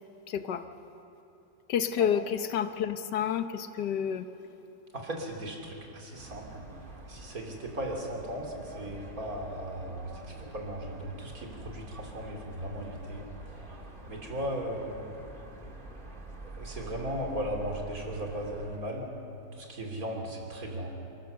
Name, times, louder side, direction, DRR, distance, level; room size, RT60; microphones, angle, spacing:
voice 1, 0.3-0.6 1.7-4.3, left 8 dB, 75° left, 10 dB, 1.5 m, -29 dB
voice 2, 4.9-6.6 7.1-13.2 13.6-13.7 14.1-15.2 16.6-19.1 19.6-20.9, right 1 dB, 50° right, 1 dB, 3.4 m, -37 dB
sound 1, 6.2-18.8, right 2 dB, 30° right, 1.9 m, -46 dB
29.5 x 14.0 x 6.9 m, 2.8 s
omnidirectional pair, 1.9 m